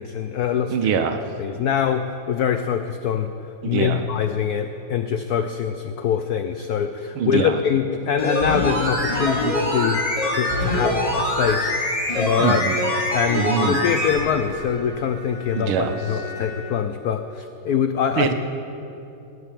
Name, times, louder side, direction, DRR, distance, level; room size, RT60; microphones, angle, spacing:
voice 1, 0.0-0.8 1.4-3.3 3.6-10.0 10.3-11.9 12.1-12.6 13.1-18.3, left 8 dB, 85° left, 8 dB, 0.8 m, -24 dB
voice 2, 0.7-1.2 3.6-4.0 7.2-7.5 12.4-12.8 13.3-13.8 15.5-15.9 18.2-18.3, right 7 dB, 80° right, 7 dB, 1.7 m, -23 dB
sound 1, 8.1-14.2 14.5-14.6, left 1 dB, 15° left, 4.1 m, -23 dB
Bowed string instrument, 12.1-16.9, right 1 dB, 45° right, 2.4 m, -38 dB
19.0 x 6.8 x 9.0 m, 2.9 s
omnidirectional pair, 2.3 m